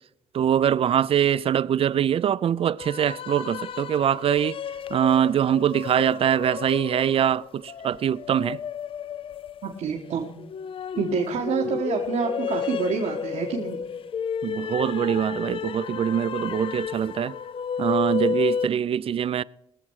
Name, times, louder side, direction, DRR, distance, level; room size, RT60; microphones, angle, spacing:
voice 1, 0.3-4.6 4.9-8.6 14.4-17.3 17.8-19.4, right 9 dB, 55° right, 0.4 m, -23 dB
sound 1, 2.8-18.7, left 7 dB, 50° left, 0.4 m, -32 dB
voice 2, 9.6-10.3 11.0-13.8, right 6 dB, 90° right, 1.4 m, -27 dB
20.5 x 7.5 x 4.7 m
cardioid pair, 115°, 12 cm